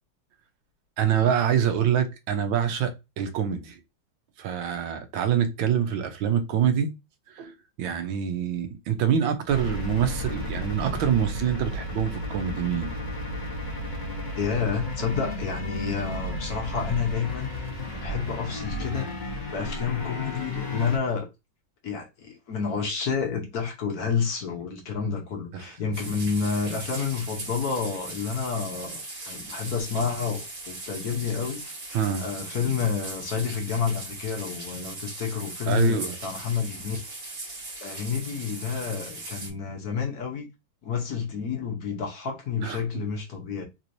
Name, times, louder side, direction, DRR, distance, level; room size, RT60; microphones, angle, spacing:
voice 1, 1.0-3.8 4.4-6.9 7.3-12.9 25.5-25.6 31.9-32.3 35.7-36.1 42.6-42.8, right 8 dB, 80° right, 1.5 m, -25 dB
sound 1, 9.5-21.0, left 1 dB, 25° left, 1.2 m, -33 dB
voice 2, 14.4-17.5 17.9-21.3 21.8-37.0 37.8-40.5 40.8-43.6, left 6 dB, 60° left, 1.3 m, -29 dB
sound 2, 25.9-39.5, right 2 dB, 50° right, 2.1 m, -39 dB
3.9 x 3.0 x 2.6 m
omnidirectional pair, 2.1 m